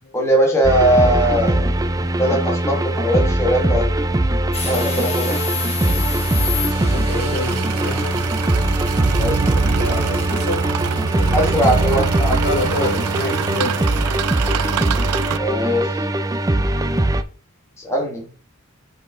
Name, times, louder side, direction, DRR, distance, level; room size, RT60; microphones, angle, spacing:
voice 1, 0.1-1.9 2.2-4.0 4.6-5.4 9.1-9.6 11.3-12.4 15.3-16.1 17.8-18.3, equal, 10° left, 1.7 m, -20 dB
sound 1, 0.6-17.2, right 1 dB, 15° right, 0.4 m, -21 dB
sound 2, 4.5-10.4, left 8 dB, 30° left, 1.5 m, -30 dB
sound 3, 4.8-15.4, right 7 dB, 90° right, 0.4 m, -26 dB
voice 2, 6.8-8.2 9.5-10.7 11.0-11.5 12.4-13.8, left 2 dB, 45° left, 1.6 m, -28 dB
6.5 x 5.2 x 3.7 m
head